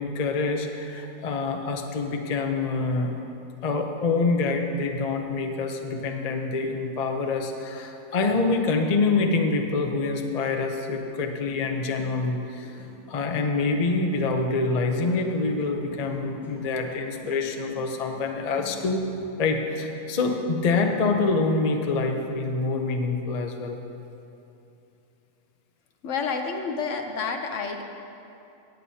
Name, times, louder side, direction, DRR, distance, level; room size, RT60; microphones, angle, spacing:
voice 1, 0.0-3.1 3.6-12.7 13.1-19.0 19.4-23.8, left 3 dB, 40° left, 3 dB, 0.6 m, -26 dB
sound 1, 11.5-21.5, left 1 dB, ahead, 2.0 m, -47 dB
voice 2, 26.0-27.8, left 5 dB, 65° left, 4 dB, 1.0 m, -29 dB
17.0 x 9.0 x 2.8 m, 2.7 s
omnidirectional pair, 1.5 m